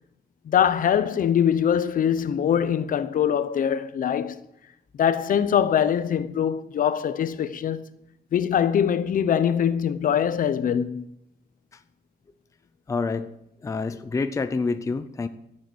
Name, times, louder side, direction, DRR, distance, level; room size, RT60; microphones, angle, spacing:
voice 1, 0.5-4.3 5.0-7.8 8.3-11.0, left 8 dB, 50° left, 0.8 m, -23 dB
voice 2, 12.9-13.3 13.6-15.3, left 4 dB, 15° left, 0.6 m, -27 dB
14.5 x 7.7 x 7.9 m
wide cardioid pair, 170°, 18 cm